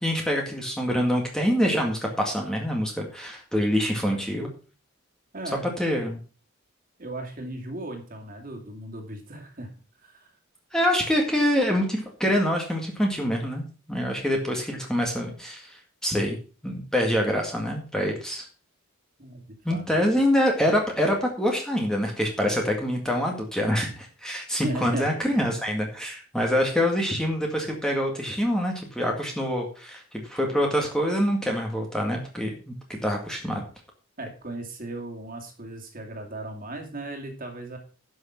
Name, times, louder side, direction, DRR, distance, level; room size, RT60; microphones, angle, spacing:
voice 1, 0.0-4.5 5.8-6.2 10.7-16.4 16.6-18.5 19.7-33.6, equal, 5° left, 0 dB, 1.9 m, -25 dB
voice 2, 5.3-5.7 7.0-9.7 10.0-10.3 19.2-19.8 24.6-25.6 34.2-37.8, right 1 dB, 40° right, 3 dB, 2.5 m, -37 dB
11.5 x 6.5 x 5.8 m, 0.37 s
head